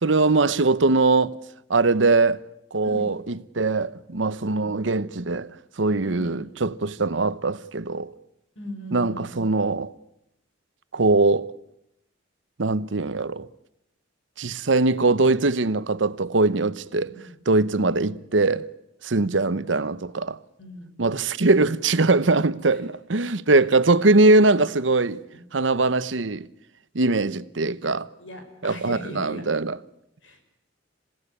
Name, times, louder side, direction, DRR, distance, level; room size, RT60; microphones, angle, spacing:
voice 1, 0.0-1.4 1.7-2.4 2.7-3.2 3.6-5.5 5.8-8.1 8.9-9.9 10.9-11.5 12.6-13.5 14.4-17.1 17.5-18.7 19.0-20.4 21.0-25.2 25.5-26.5 26.9-28.1 28.6-29.8, right 3 dB, 75° right, 0.9 m, -21 dB
voice 2, 6.0-6.5 8.6-9.4 17.0-17.4 17.7-18.2 19.1-19.5 20.6-20.9 22.7-22.8 23.6-23.7 25.3-25.4 28.2-29.4 30.2-30.4, equal, 85° left, 5.8 m, -39 dB
27.5 x 17.5 x 9.8 m
head